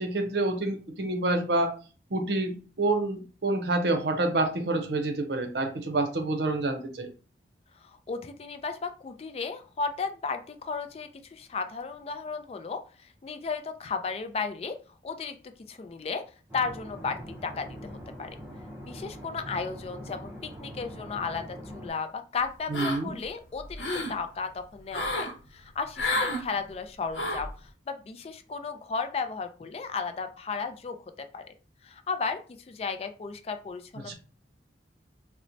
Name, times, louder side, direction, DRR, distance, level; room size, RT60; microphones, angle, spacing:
voice 1, 0.0-1.7 2.1-7.1 22.7-23.1 34.1-34.2, right 2 dB, 70° right, 5 dB, 0.6 m, -28 dB
voice 2, 7.8-12.8 13.2-14.8 15.0-15.4 15.7-16.2 16.5-18.4 18.8-31.0 31.3-31.4 31.8-32.4 32.7-34.1, left 5 dB, 35° left, 8 dB, 0.3 m, -34 dB
sound 1, 16.5-21.9, equal, 15° right, 0.5 m, -43 dB
sound 2, 22.7-23.3 23.6-24.2 24.9-25.3 26.0-26.4 27.1-27.5, left 1 dB, 85° left, 0.8 m, -30 dB
4.3 x 2.1 x 2.6 m, 0.36 s
head